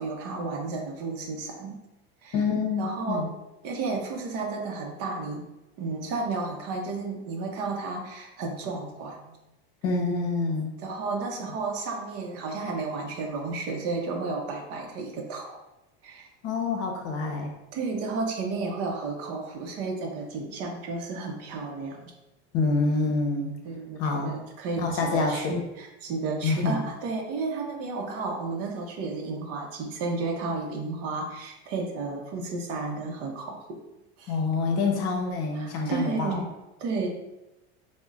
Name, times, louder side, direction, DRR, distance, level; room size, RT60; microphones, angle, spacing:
voice 1, 0.0-1.8 2.2-2.3 2.8-3.3 3.6-5.4 5.8-9.4 10.8-15.6 16.0-16.3 17.7-22.1 23.6-33.8 34.2-34.4 35.5-36.5 36.8-37.1, right 3 dB, 50° right, 3 dB, 0.7 m, -32 dB
voice 2, 2.3-3.3 9.8-10.7 16.4-17.5 22.5-23.5 24.0-24.3 24.8-25.6 26.4-26.8 34.3-36.4, left 4 dB, 50° left, 2 dB, 0.8 m, -26 dB
5.2 x 2.1 x 2.4 m, 0.95 s
supercardioid pair, 130°, 32 cm